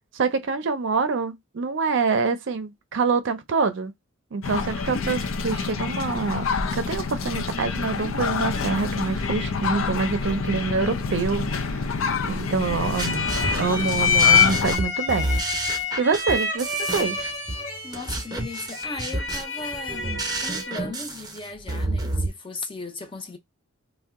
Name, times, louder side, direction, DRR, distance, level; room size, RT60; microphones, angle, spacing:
voice 1, 0.1-3.9 4.3-6.4 6.7-11.8 12.3-13.3 13.6-15.3 16.0-17.3, right 4 dB, 65° right, 0.5 m, -26 dB
sound 1, 4.4-14.8, left 4 dB, 90° left, 0.5 m, -28 dB
sound 2, 12.7-22.3, right 2 dB, 20° right, 0.7 m, -30 dB
sound 3, 12.8-20.9, left 6 dB, 60° left, 1.1 m, -26 dB
voice 2, 17.8-20.1 20.4-23.4, left 3 dB, 25° left, 0.6 m, -36 dB
2.7 x 2.1 x 3.5 m
head